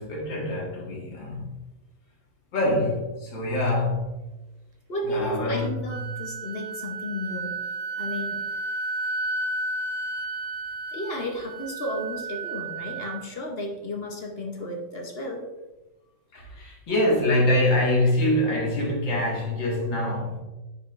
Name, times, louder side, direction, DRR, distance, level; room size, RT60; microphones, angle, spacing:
voice 1, 0.0-1.6 2.5-4.2 5.0-5.8 16.3-20.4, left 1 dB, 80° left, 2.5 m, -25 dB
voice 2, 4.9-7.6 8.0-8.5 10.9-15.5, left 1 dB, 45° left, 0.8 m, -33 dB
Wind instrument woodwind instrument, 5.5-13.3, right 2 dB, 85° right, 1.4 m, -32 dB
10.0 x 4.9 x 2.5 m
omnidirectional pair, 2.0 m